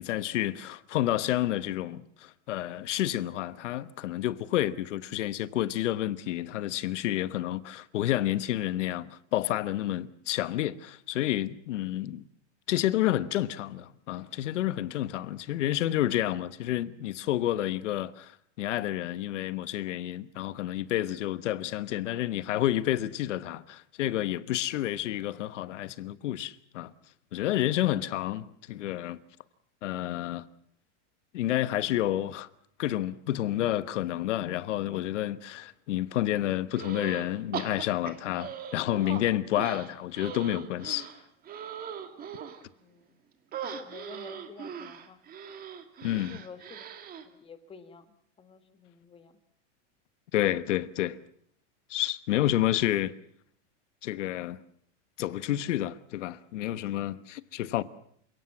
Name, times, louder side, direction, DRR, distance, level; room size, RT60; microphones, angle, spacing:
voice 1, 0.0-12.2 12.7-18.3 18.6-26.9 27.3-29.2 29.8-30.4 31.3-32.5 32.8-41.1 43.6-43.7 46.0-46.4 50.3-51.2 51.9-53.1 54.0-54.6 55.2-57.8, left 13 dB, 85° left, 1.3 m, -30 dB
sound 1, 36.7-37.3 37.5-39.2 39.5-42.6 43.5-47.2, right 8 dB, 25° right, 2.1 m, -40 dB
voice 2, 42.7-43.1 43.8-45.2 46.1-46.9 47.3-48.1 48.4-49.4, left 5 dB, 15° left, 1.9 m, -50 dB
28.5 x 17.5 x 7.4 m
supercardioid pair, 155°, 35 cm